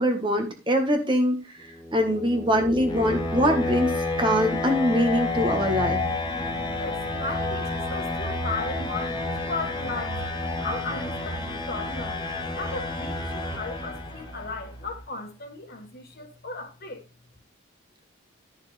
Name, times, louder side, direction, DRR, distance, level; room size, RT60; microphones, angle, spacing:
voice 1, 0.0-1.4 1.9-6.0, equal, 25° right, 1.4 m, -23 dB
sound 1, 1.7-14.5, left 2 dB, 20° left, 1.1 m, -30 dB
sound 2, 2.6-15.0, right 2 dB, 70° right, 1.8 m, -43 dB
voice 2, 6.8-10.2 10.6-12.2 12.5-17.0, left 3 dB, 45° left, 1.8 m, -36 dB
11.5 x 6.4 x 3.3 m
head